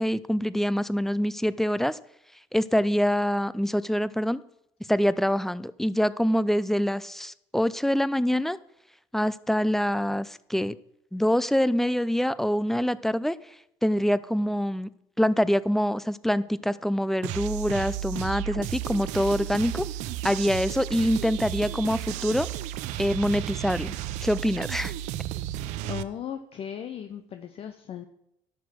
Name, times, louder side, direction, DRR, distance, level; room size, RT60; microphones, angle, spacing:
voice 1, 0.0-2.0 2.5-4.4 4.9-8.6 9.1-10.8 11.1-13.4 13.8-14.9 15.2-19.9 20.2-22.5 23.0-24.0 24.2-24.9, equal, 5° left, 18 dB, 0.5 m, -25 dB
sound 1, 17.2-26.0, right 13 dB, 80° right, 0.6 m, -33 dB
voice 2, 25.9-28.1, left 9 dB, 55° left, 7 dB, 0.8 m, -37 dB
11.5 x 6.1 x 6.3 m, 0.79 s
supercardioid pair, 75°, 12 cm